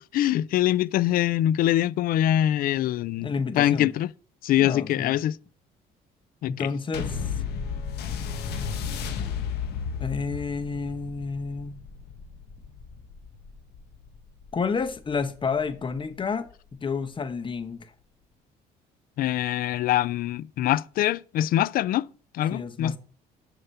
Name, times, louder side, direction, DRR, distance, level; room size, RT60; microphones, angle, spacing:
voice 1, 0.0-3.3 3.6-4.1 4.4-5.4 6.4-6.7 19.2-22.1 22.3-23.0, left 12 dB, 60° left, 0.4 m, -24 dB
voice 2, 3.2-3.9 4.6-5.1 6.5-7.3 10.0-11.8 14.5-16.5 16.8-17.9 22.5-23.0, left 5 dB, 30° left, 1.1 m, -30 dB
sound 1, 6.9-15.7 16.5-16.6, left 6 dB, 75° left, 1.4 m, -34 dB
6.7 x 5.8 x 5.6 m
cardioid pair, 110°, 17 cm